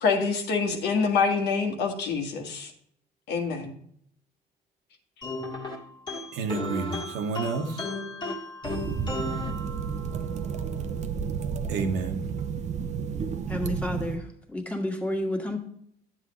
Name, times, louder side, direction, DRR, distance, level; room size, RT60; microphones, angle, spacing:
voice 1, 0.0-2.7 3.3-3.7, left 5 dB, 80° left, 3 dB, 1.6 m, -26 dB
sound 1, 5.2-10.3, left 2 dB, 25° left, 1.6 m, -35 dB
voice 2, 6.3-7.9 11.7-12.2, right 4 dB, 85° right, 4 dB, 1.3 m, -30 dB
sound 2, 8.6-14.2, right 6 dB, 45° right, 0.6 m, -32 dB
voice 3, 13.5-14.2 14.5-15.6, left 1 dB, 5° left, 2 dB, 1.6 m, -30 dB
10.5 x 7.5 x 3.1 m, 0.66 s
cardioid pair, 110°, 17 cm